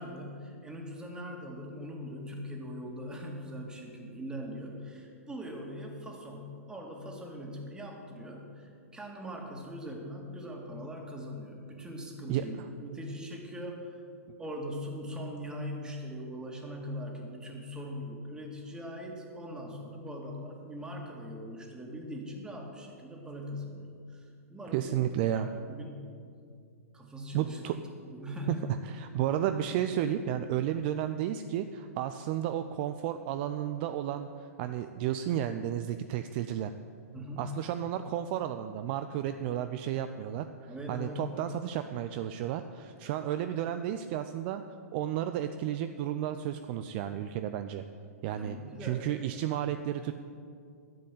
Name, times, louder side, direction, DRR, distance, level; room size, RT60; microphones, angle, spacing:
voice 1, 0.0-14.0 14.4-25.0 25.3-26.1 26.9-27.6 28.0-28.7 37.1-37.6 40.7-41.5 48.4-49.1, equal, 10° right, 1 dB, 2.1 m, -41 dB
voice 2, 24.7-25.5 27.3-27.8 28.8-36.7 37.4-44.6 44.9-47.8 48.2-50.1, right 11 dB, 40° right, 9 dB, 0.5 m, -32 dB
11.5 x 7.5 x 8.5 m, 2.3 s
figure-of-eight pair, 110°, 8 cm